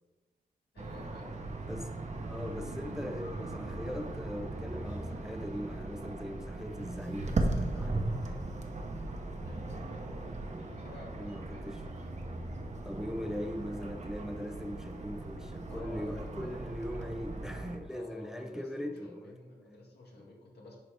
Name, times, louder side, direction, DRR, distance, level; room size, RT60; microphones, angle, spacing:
voice 1, 0.7-1.3 9.4-12.1 15.7-16.6 17.9-20.8, left 2 dB, 80° left, 1.9 m, -52 dB
sound 1, 0.8-17.8, right 2 dB, 45° right, 0.9 m, -38 dB
voice 2, 1.6-8.8 10.4-10.7 11.2-11.8 12.8-19.3, equal, 5° right, 0.5 m, -40 dB
10.5 x 3.9 x 3.4 m
wide cardioid pair, 85°, 17 cm